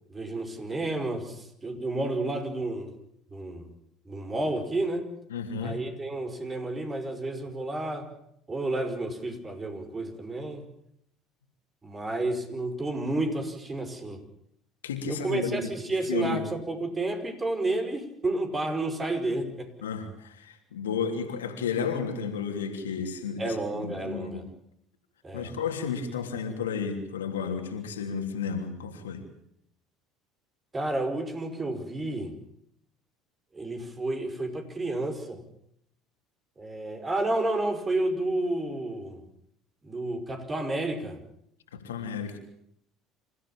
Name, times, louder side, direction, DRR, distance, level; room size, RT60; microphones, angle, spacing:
voice 1, 0.1-2.9 3.3-3.7 4.1-5.1 5.6-8.1 8.5-10.7 11.8-14.2 15.1-19.7 23.4-24.4 25.2-25.6 30.7-32.3 33.5-35.4 36.6-39.2 39.8-41.2, right 2 dB, 25° right, 7 dB, 5.5 m, -31 dB
voice 2, 5.3-5.8 14.8-15.7 16.1-16.4 19.8-24.4 25.3-29.2 41.7-42.4, left 6 dB, 85° left, 5 dB, 3.1 m, -32 dB
27.5 x 15.0 x 8.8 m, 0.73 s
hypercardioid pair, 65°, 0 cm